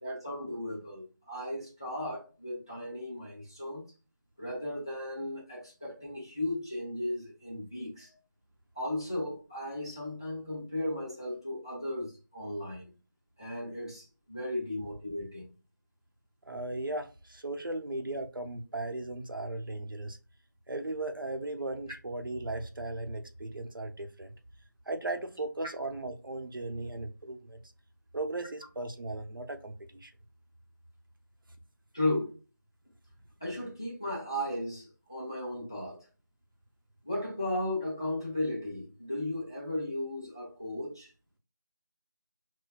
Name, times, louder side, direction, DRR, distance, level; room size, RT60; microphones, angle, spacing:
voice 1, 0.0-3.8 4.4-8.2 8.8-12.9 13.4-15.4 31.9-32.4 33.4-36.0 37.0-41.1, left 1 dB, 15° left, 0.5 m, -35 dB
voice 2, 16.4-20.2 20.7-24.3 24.9-27.6 28.1-30.1, right 2 dB, 90° right, 0.8 m, -37 dB
6.1 x 2.1 x 2.4 m
figure-of-eight pair, 175°, 11 cm